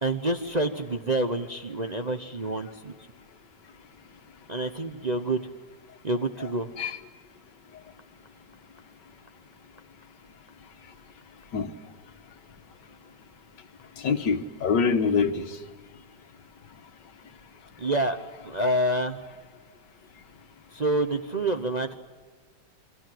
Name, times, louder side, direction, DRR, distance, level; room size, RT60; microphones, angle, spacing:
voice 1, 0.0-2.9 4.5-5.4 6.0-6.7 17.8-18.2 18.4-19.2 20.7-21.9, right 1 dB, 30° right, 5 dB, 0.8 m, -27 dB
voice 2, 14.0-15.6, left 5 dB, 75° left, 8 dB, 1.9 m, -25 dB
27.0 x 24.0 x 7.8 m, 1.5 s
omnidirectional pair, 1.9 m